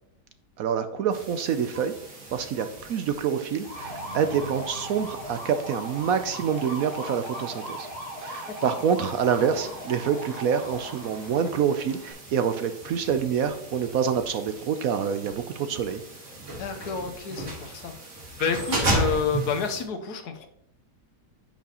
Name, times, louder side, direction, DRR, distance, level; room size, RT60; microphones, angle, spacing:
voice 1, 0.6-1.9 2.3-7.9 8.2-16.0, right 7 dB, 65° right, 9 dB, 0.9 m, -26 dB
sound 1, 1.1-19.8, right 1 dB, 45° right, 2.1 m, -36 dB
sound 2, 3.6-12.1, right 1 dB, 20° right, 2.9 m, -38 dB
voice 2, 16.6-17.9 18.4-20.5, left 5 dB, 75° left, 6 dB, 1.4 m, -29 dB
10.0 x 6.0 x 2.9 m, 0.79 s
omnidirectional pair, 1.8 m